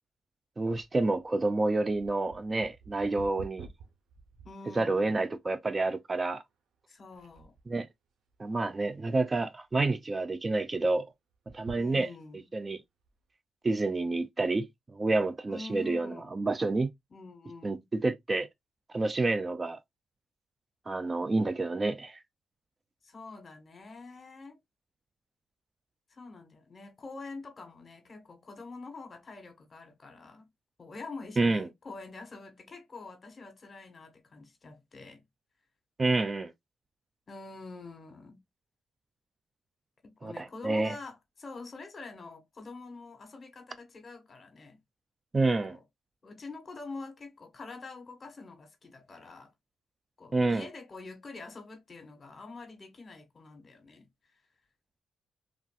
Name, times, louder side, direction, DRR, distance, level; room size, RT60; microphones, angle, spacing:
voice 1, 0.6-3.7 4.7-6.4 7.7-7.9 8.4-11.1 11.5-12.1 12.5-12.8 13.6-16.9 17.6-17.8 18.0-18.5 18.9-19.8 20.9-22.2 31.4-31.7 36.0-36.5 40.2-40.9 45.3-45.8 50.3-50.7, right 2 dB, 30° right, 0.4 m, -28 dB
sound 1, 0.7-5.2 5.7-5.8 6.5-6.8 7.1-7.8 8.3-9.0 9.4-9.5 9.7-9.8 11.3-12.4 13.0-13.1, right 6 dB, 80° right, 0.7 m, -50 dB
voice 2, 4.4-5.3 6.9-7.5 11.7-12.4 15.5-16.3 17.1-17.9 23.0-24.6 26.1-30.5 30.8-35.2 37.3-38.4 40.0-44.8 45.6-45.8 46.2-49.5 50.2-54.4, left 3 dB, 40° left, 1.3 m, -46 dB
3.4 x 2.5 x 2.3 m
cardioid pair, 80°, 0 cm